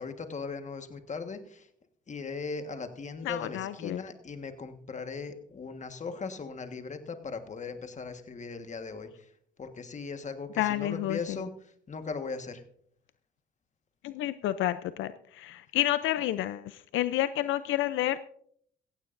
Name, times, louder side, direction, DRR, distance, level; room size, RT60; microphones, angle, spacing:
voice 1, 0.0-1.7 2.1-9.3 9.6-11.5 11.9-12.6, left 4 dB, 35° left, 8 dB, 1.5 m, -38 dB
voice 2, 3.2-4.0 10.6-11.5 14.0-18.2, left 13 dB, 85° left, 14 dB, 0.5 m, -30 dB
16.0 x 15.5 x 2.6 m, 0.63 s
cardioid pair, 90°, 20 cm